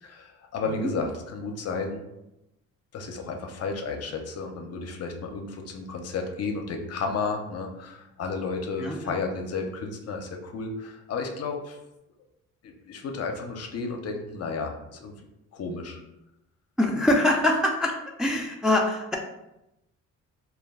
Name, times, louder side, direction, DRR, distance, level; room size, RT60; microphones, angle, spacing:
voice 1, 0.0-2.1 2.9-11.8 12.6-15.1 15.5-16.0, left 4 dB, 55° left, 3 dB, 0.5 m, -32 dB
voice 2, 8.8-9.1 16.8-17.9 18.2-19.2, left 1 dB, ahead, 0 dB, 0.3 m, -23 dB
2.3 x 2.2 x 3.4 m, 0.90 s
cardioid pair, 90°, 30 cm